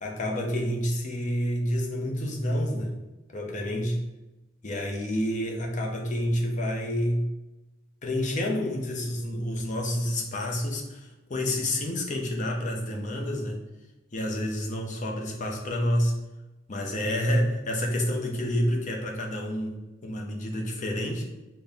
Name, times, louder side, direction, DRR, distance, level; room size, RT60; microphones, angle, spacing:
voice 1, 0.0-3.0 3.3-4.0 4.6-7.3 8.0-13.6 14.1-16.2 16.7-21.3, equal, 35° left, 1 dB, 0.6 m, -29 dB
4.1 x 2.1 x 3.4 m, 1.0 s
head